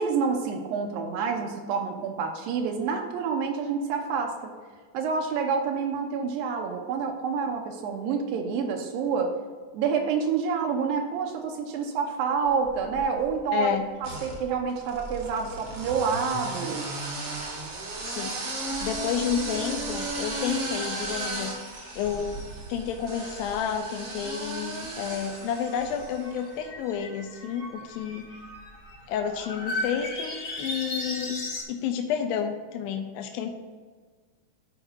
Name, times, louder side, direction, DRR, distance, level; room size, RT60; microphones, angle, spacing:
voice 1, 0.0-4.5 4.9-9.3 9.7-16.9, right 5 dB, 85° right, 1 dB, 2.4 m, -28 dB
sound 1, 12.6-13.3 14.0-26.3, right 2 dB, 65° right, 1.1 m, -35 dB
voice 2, 13.5-13.9 18.0-21.5 22.0-22.4 22.7-28.3 29.1-31.4 31.7-33.5, left 8 dB, 85° left, 4 dB, 2.4 m, -30 dB
sound 2, 25.0-31.6, left 1 dB, 50° left, 1.2 m, -37 dB
14.0 x 4.9 x 2.6 m, 1.5 s
omnidirectional pair, 4.2 m